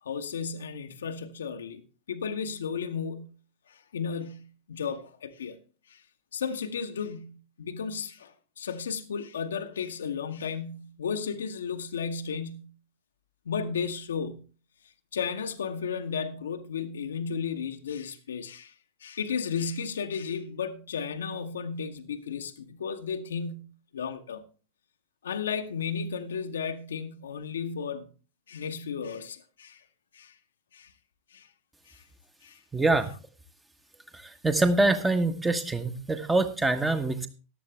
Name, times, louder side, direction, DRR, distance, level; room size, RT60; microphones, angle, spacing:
voice 1, 0.0-1.8 2.1-3.3 3.7-5.6 5.9-6.0 6.3-12.7 13.5-14.4 15.1-18.7 19.0-23.7 23.9-24.4 25.2-28.1 28.5-29.8 30.1-30.3 30.7-30.9 31.3-31.5 31.9-32.0 32.4-32.6, left 6 dB, 65° left, 1.0 m, -34 dB
voice 2, 32.7-33.1 34.4-37.3, right 2 dB, 10° right, 1.3 m, -24 dB
14.0 x 11.0 x 3.3 m
figure-of-eight pair, 90°, 0 cm